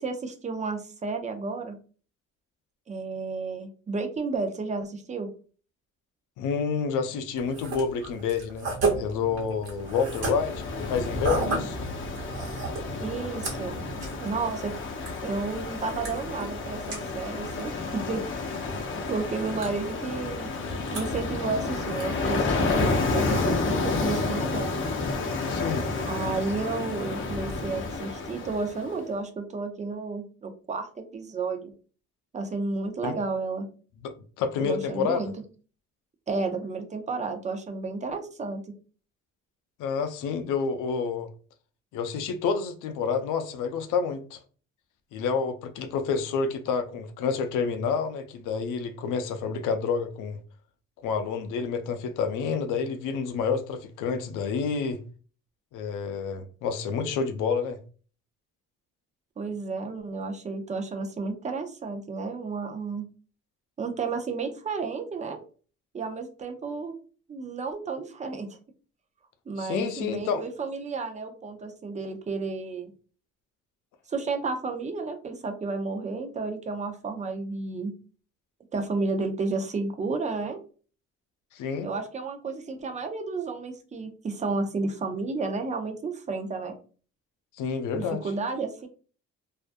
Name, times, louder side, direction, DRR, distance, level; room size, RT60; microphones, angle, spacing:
voice 1, 0.0-1.8 2.9-5.3 13.0-13.8 14.2-14.7 15.2-18.2 19.1-20.5 20.9-24.7 26.1-31.7 32.3-33.7 34.6-35.3 36.3-38.6 59.4-63.1 63.8-65.4 65.9-67.0 67.3-68.5 69.5-72.9 74.1-77.9 78.7-80.6 81.8-86.7 87.9-88.9, right 4 dB, 25° right, 0.5 m, -32 dB
voice 2, 6.4-11.8 12.9-13.0 25.5-25.9 33.0-33.1 34.0-35.3 39.8-41.3 41.9-44.4 45.1-50.4 51.0-55.0 55.7-57.8 69.6-70.4 81.5-81.9 87.6-88.2, left 5 dB, 90° left, 0.5 m, -29 dB
sound 1, 7.4-23.9, right 3 dB, 55° right, 1.1 m, -36 dB
sound 2, 8.6-14.9, right 4 dB, 75° right, 0.7 m, -44 dB
Ocean, 9.8-28.9, left 3 dB, 40° left, 0.6 m, -30 dB
2.4 x 2.1 x 2.5 m
cardioid pair, 90°, 30 cm